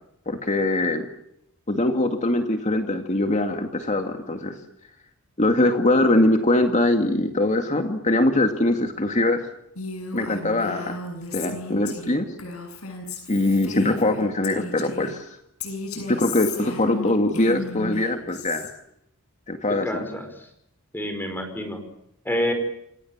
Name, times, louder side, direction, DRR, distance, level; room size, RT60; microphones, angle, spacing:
voice 1, 0.3-1.1 1.7-4.6 5.4-9.4 10.1-11.0 11.3-12.3 13.3-15.4 16.0-18.7 19.5-20.1, left 1 dB, 35° left, 5 dB, 2.2 m, -22 dB
Female speech woman speaking, 9.7-15.1 15.6-18.7, left 3 dB, 90° left, 7.7 m, -34 dB
voice 2, 19.8-20.5 20.9-21.8 22.2-22.5, left 1 dB, 10° left, 6 dB, 5.0 m, -28 dB
28.0 x 28.0 x 7.4 m, 0.78 s
head